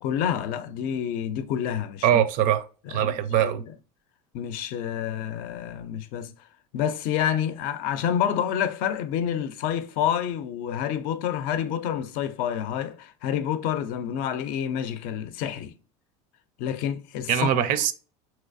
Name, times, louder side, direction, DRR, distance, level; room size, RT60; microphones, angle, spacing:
voice 1, 0.0-2.2 2.9-3.7 4.3-6.3 6.7-15.7 16.6-17.5, left 9 dB, 60° left, 0.5 m, -28 dB
voice 2, 2.0-3.6 17.3-17.9, right 10 dB, 55° right, 0.5 m, -22 dB
3.2 x 3.0 x 2.5 m
supercardioid pair, 120°, 16 cm